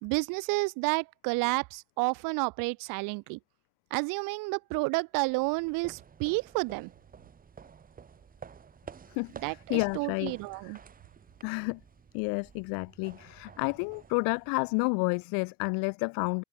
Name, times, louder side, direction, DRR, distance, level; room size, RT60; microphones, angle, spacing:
voice 1, 0.0-3.4 3.9-6.9 9.4-10.8, right 28 dB, 65° right, 2.8 m, -30 dB
sound 1, 5.2-14.8, right 6 dB, 25° right, 6.8 m, -52 dB
voice 2, 9.1-10.4 10.6-10.8 11.4-11.8 12.1-16.4, left 34 dB, 70° left, 2.8 m, -30 dB
supercardioid pair, 130°, 35 cm